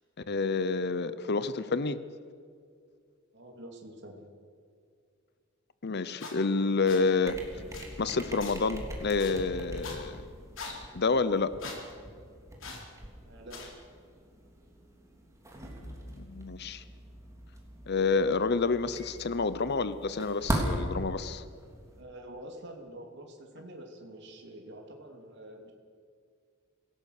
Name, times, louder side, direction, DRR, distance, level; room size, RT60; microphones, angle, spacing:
voice 1, 0.3-2.0 5.8-7.4 8.0-10.2 10.9-11.5 15.8-16.8 17.9-21.4, left 4 dB, 55° left, 14 dB, 0.8 m, -29 dB
voice 2, 3.3-4.3 13.2-13.6 21.9-25.7, right 1 dB, 60° right, 2 dB, 2.9 m, -46 dB
sound 1, 6.2-6.3 6.8-7.0 7.7-7.9 8.4-8.5 9.2-9.3 9.8-10.0 10.6-10.7 11.6-11.8 12.6-12.8 13.5-13.7, left 4 dB, 70° left, 4.7 m, -41 dB
sound 2, 7.2-22.0, right 1 dB, 15° right, 3.2 m, -40 dB
26.0 x 17.5 x 6.7 m, 2.2 s
head